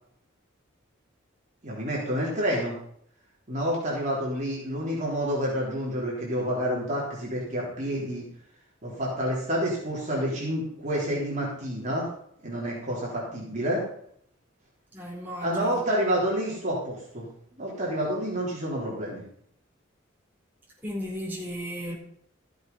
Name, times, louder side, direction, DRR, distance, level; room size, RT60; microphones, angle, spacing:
voice 1, 1.6-2.7 3.5-8.2 8.8-12.1 12.4-13.8 15.4-17.3 17.6-19.2, equal, 35° right, -5 dB, 3.8 m, -28 dB
voice 2, 14.9-15.8 20.8-22.0, equal, 10° right, -6 dB, 4.7 m, -35 dB
14.5 x 7.8 x 5.5 m, 0.66 s
head